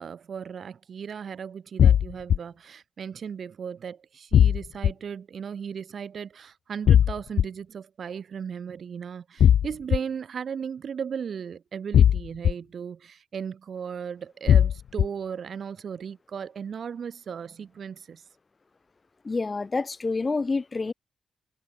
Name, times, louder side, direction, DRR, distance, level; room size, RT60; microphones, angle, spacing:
voice 1, 0.0-18.2, right 7 dB, 55° right, 6.0 m, -36 dB
sound 1, 1.8-2.4 4.3-4.9 6.9-7.4 9.4-10.0 11.9-12.5 14.5-15.0, left 9 dB, 90° left, 0.4 m, -17 dB
voice 2, 19.2-20.9, left 3 dB, 25° left, 4.0 m, -28 dB
wide cardioid pair, 170°, 0 cm